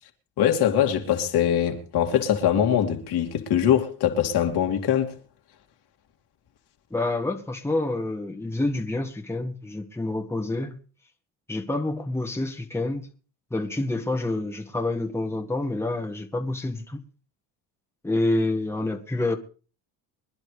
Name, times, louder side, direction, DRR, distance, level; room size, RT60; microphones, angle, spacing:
voice 1, 0.4-5.1, left 10 dB, 60° left, 2.7 m, -22 dB
voice 2, 6.9-10.8 11.5-13.1 13.5-17.0 18.0-19.4, left 2 dB, 5° left, 1.7 m, -28 dB
25.0 x 10.5 x 3.4 m
supercardioid pair, 95°, 44 cm